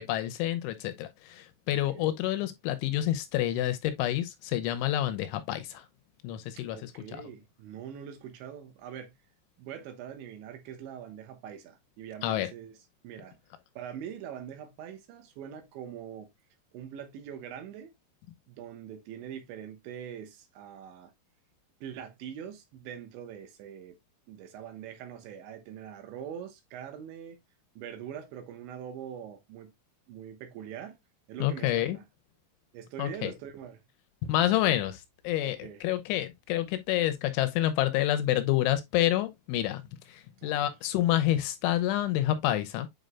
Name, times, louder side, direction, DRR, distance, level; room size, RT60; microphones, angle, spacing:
voice 1, 0.0-5.9 6.2-7.2 12.2-12.5 31.4-32.0 33.0-33.3 34.2-39.8 40.1-42.9, left 13 dB, 80° left, 3.1 m, -28 dB
voice 2, 1.7-2.1 6.6-9.1 9.6-12.8 13.0-13.4 13.8-16.3 16.7-17.9 18.5-21.1 21.8-24.0 24.3-27.4 27.8-29.7 30.1-31.0 31.3-32.1 32.7-33.8 35.4-35.8 40.4-40.7, right 9 dB, 75° right, 3.3 m, -43 dB
8.1 x 5.2 x 2.2 m
omnidirectional pair, 5.6 m